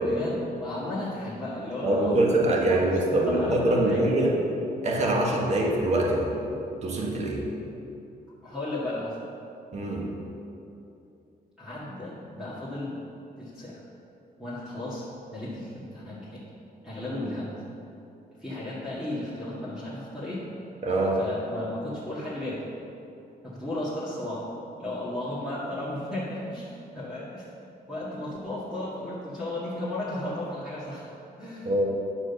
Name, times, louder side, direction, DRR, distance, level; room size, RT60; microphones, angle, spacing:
voice 1, 0.0-4.1 8.4-9.2 11.6-13.0 13.4-13.8 14.4-16.4 16.8-17.5 18.4-20.4 21.2-22.7 23.4-24.5 24.8-27.5 27.9-31.1 31.4-31.7, left 1 dB, 5° right, -10 dB, 1.9 m, -34 dB
voice 2, 1.8-4.3 4.8-6.3 6.8-7.5 9.7-10.1 20.8-21.2 31.6-31.9, right 1 dB, 45° right, -1 dB, 1.6 m, -24 dB
10.5 x 6.2 x 6.9 m, 2.8 s
cardioid pair, 150°, 16 cm